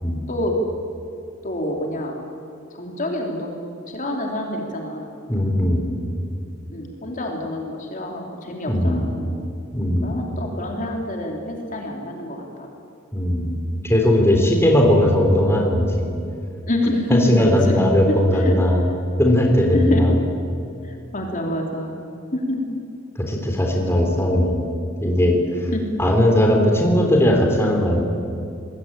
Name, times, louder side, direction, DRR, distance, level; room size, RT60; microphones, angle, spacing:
voice 1, 1.4-2.2 2.7-3.6 3.9-5.1 6.7-9.4 10.0-12.4 16.7-17.8 18.3-18.5 19.7-20.2 20.8-22.8 25.7-25.8, left 1 dB, 40° left, 1 dB, 3.5 m, -27 dB
voice 2, 5.3-5.9 8.7-9.1 9.7-10.2 13.1-16.0 17.1-18.8 19.2-20.1 23.2-24.7 25.0-25.4 26.0-28.0, left 1 dB, 10° left, 1 dB, 3.6 m, -18 dB
25.5 x 21.0 x 8.9 m, 2.6 s
head